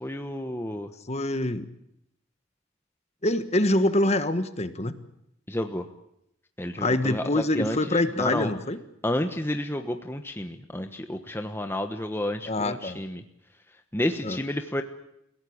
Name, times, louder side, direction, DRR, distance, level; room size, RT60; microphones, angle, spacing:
voice 1, 0.0-0.9 5.5-5.9 6.6-8.5 9.0-13.2 13.9-14.8, left 1 dB, 10° left, 6 dB, 1.1 m, -30 dB
voice 2, 1.1-1.7 3.2-5.0 6.8-8.8 12.5-13.0 14.2-14.4, left 1 dB, 35° left, 11 dB, 1.5 m, -25 dB
29.5 x 17.5 x 8.6 m, 0.80 s
head